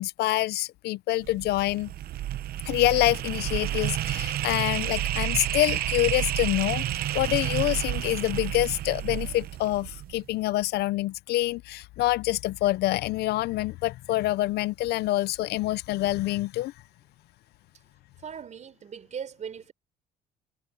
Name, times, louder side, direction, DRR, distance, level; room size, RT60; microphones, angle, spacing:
voice 1, 0.0-1.9 2.6-16.7, left 16 dB, 75° left, 0.6 m, -26 dB
sound 1, 1.2-10.3, right 13 dB, 65° right, 0.8 m, -30 dB
voice 2, 18.2-19.7, right 7 dB, 45° right, 6.3 m, -39 dB
cardioid pair, 110°, 17 cm